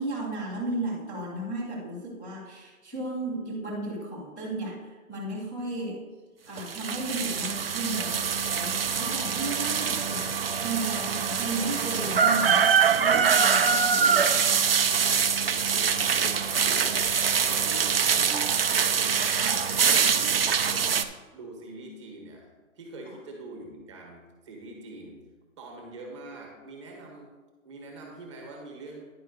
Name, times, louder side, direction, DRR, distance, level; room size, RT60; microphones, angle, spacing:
voice 1, 0.0-6.1 6.5-10.3 10.6-12.7 13.0-14.6 19.4-19.6, right 2 dB, 10° left, -10 dB, 0.8 m, -34 dB
sound 1, 6.6-21.0, right 6 dB, 45° right, 0.4 m, -24 dB
voice 2, 15.4-21.0 21.3-22.5 22.7-25.2 25.6-27.3 27.6-29.0, right 2 dB, 20° right, 1 dB, 1.1 m, -44 dB
10.0 x 9.6 x 2.7 m, 1.3 s
hypercardioid pair, 170°, 42 cm